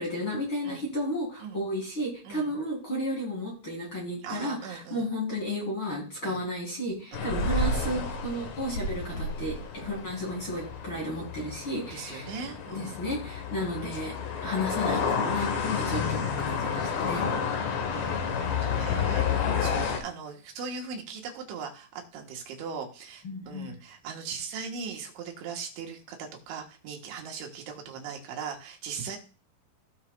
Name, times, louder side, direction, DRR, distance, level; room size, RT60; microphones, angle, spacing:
voice 1, 0.0-9.6 9.8-12.3 12.7-14.1 14.4-17.2 18.4-18.8 23.2-23.7, equal, 30° left, -3 dB, 3.4 m, -33 dB
voice 2, 4.2-5.1 6.2-6.4 7.1-7.3 11.6-12.9 17.8-29.2, right 6 dB, 75° right, 1 dB, 3.5 m, -39 dB
Street Middle, 7.1-20.0, left 5 dB, 70° left, 3.1 m, -30 dB
17.0 x 5.6 x 2.4 m, 0.36 s
omnidirectional pair, 5.8 m